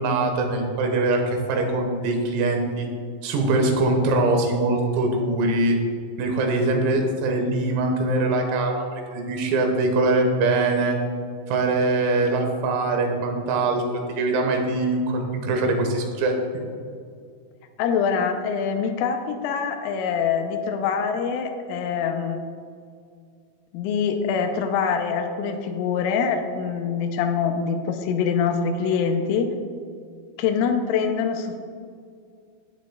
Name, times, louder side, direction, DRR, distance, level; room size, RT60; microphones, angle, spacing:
voice 1, 0.0-2.9 3.2-5.8 6.2-8.9 9.1-11.0 11.5-16.4, right 2 dB, 85° right, 3 dB, 4.1 m, -22 dB
voice 2, 17.8-22.4 23.7-29.5 30.4-31.6, left 6 dB, 85° left, 5 dB, 3.2 m, -24 dB
16.0 x 9.4 x 2.3 m, 2.2 s
omnidirectional pair, 5.9 m